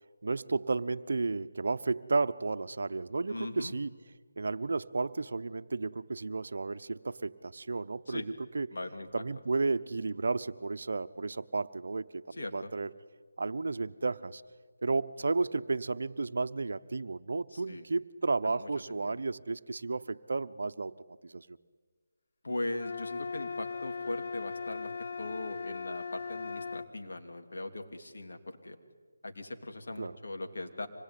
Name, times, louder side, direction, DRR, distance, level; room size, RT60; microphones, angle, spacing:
voice 1, 0.2-4.0 4.4-8.7 9.1-12.9 13.4-14.4 14.8-20.9 21.2-21.6 30.0-30.2, right 3 dB, 65° right, 12 dB, 0.9 m, -33 dB
voice 2, 3.3-3.7 8.1-8.3 8.7-9.2 12.3-12.7 17.5-17.8 18.4-19.2 22.4-24.9 25.2-28.8 29.2-30.9, left 2 dB, 70° left, 5 dB, 3.0 m, -40 dB
sound 1, 22.8-26.9, left 5 dB, 55° left, 0.9 m, -38 dB
25.5 x 20.5 x 9.8 m, 1.5 s
figure-of-eight pair, 165°, 0 cm